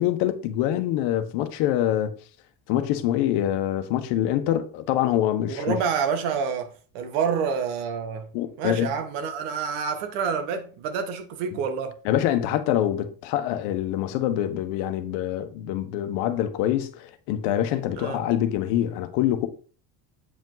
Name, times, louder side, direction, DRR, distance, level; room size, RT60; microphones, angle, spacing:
voice 1, 0.0-2.1 2.7-5.8 8.3-8.9 12.0-19.5, left 12 dB, 65° left, 1.2 m, -25 dB
voice 2, 5.5-8.3 8.6-12.0 18.0-18.2, right 6 dB, 80° right, 1.6 m, -28 dB
8.5 x 5.1 x 3.9 m
cardioid pair, 170°, 45 cm